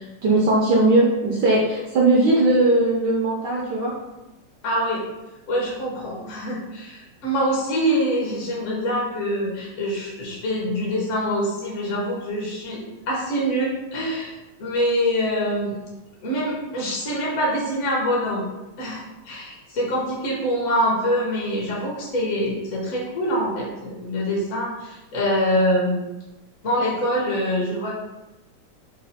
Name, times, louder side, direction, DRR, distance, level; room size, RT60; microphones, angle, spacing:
voice 1, 0.0-3.9, right 2 dB, 70° right, -3 dB, 1.0 m, -19 dB
voice 2, 4.6-5.0 5.5-14.3 14.6-15.7 16.2-18.5 18.8-26.0 26.6-27.9, equal, 55° left, -4 dB, 0.9 m, -25 dB
4.0 x 2.4 x 4.1 m, 1.0 s
omnidirectional pair, 2.4 m